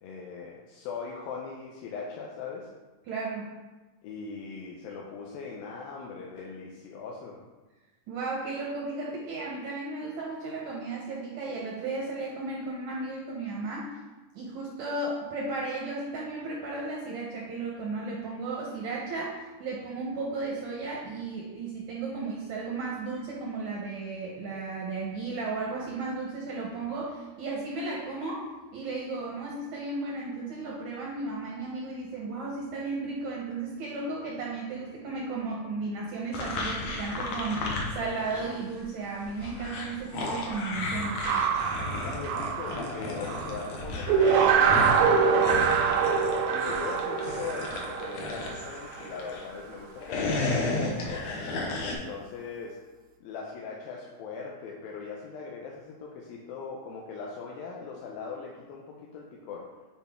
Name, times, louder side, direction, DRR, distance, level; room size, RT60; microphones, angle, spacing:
voice 1, 0.0-2.7 4.0-7.4 41.8-45.9 46.4-51.3 51.8-52.8 53.2-59.7, left 5 dB, 85° left, -2 dB, 2.4 m, -40 dB
voice 2, 3.1-3.5 8.1-13.9 14.3-41.2, right 3 dB, 75° right, -3 dB, 1.8 m, -34 dB
sound 1, 36.3-38.5 38.8-49.4 49.9-52.0, left 2 dB, 70° left, 1.7 m, -33 dB
sound 2, 41.0-43.7 44.1-49.2, right 6 dB, 90° right, 2.5 m, -25 dB
8.0 x 4.2 x 3.5 m, 1.2 s
omnidirectional pair, 4.1 m